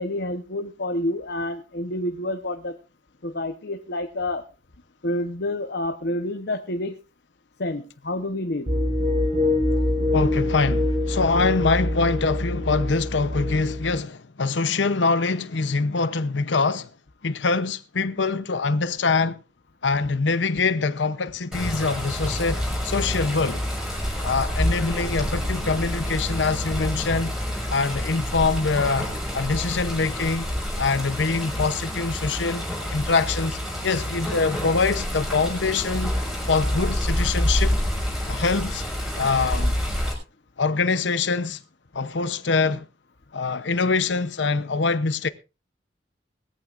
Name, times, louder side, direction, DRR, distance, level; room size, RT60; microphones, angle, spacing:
voice 1, 0.0-2.8 3.2-4.4 5.0-6.9 7.6-8.7, left 1 dB, 60° left, 1.0 m, -28 dB
sound 1, 8.7-14.0, left 1 dB, 45° right, 5.6 m, -24 dB
voice 2, 10.1-16.9 17.2-19.4 19.8-23.6 24.2-27.3 27.7-29.1 29.3-30.5 30.8-36.1 36.4-37.8 38.3-38.8 39.2-39.7 40.6-41.6 41.9-42.8 43.3-45.3, left 4 dB, 80° left, 0.8 m, -24 dB
Water, 21.5-40.1, equal, 5° right, 6.0 m, -28 dB
19.5 x 14.5 x 2.5 m
head